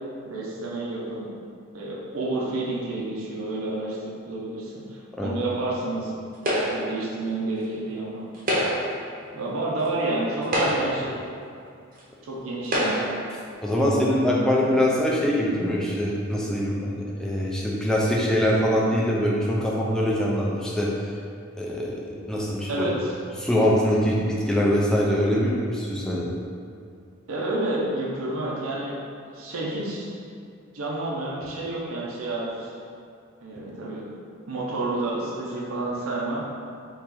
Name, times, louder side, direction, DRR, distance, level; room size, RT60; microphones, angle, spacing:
voice 1, 0.3-1.3 1.7-6.1 6.7-8.3 9.3-11.2 12.2-13.1 13.7-14.8 22.7-23.2 27.3-29.0 29.3-30.1 30.7-32.7 33.4-34.0 34.5-36.4, right 2 dB, 85° right, -5 dB, 0.6 m, -30 dB
sound 1, 6.4-7.0 8.3-9.0 9.8-9.9 10.4-11.1 12.0-12.1 12.6-13.2, equal, 40° right, 0.7 m, -25 dB
voice 2, 13.6-20.9 21.6-22.9 23.4-26.3, equal, 5° left, -4 dB, 0.4 m, -23 dB
3.0 x 3.0 x 3.7 m, 2.3 s
head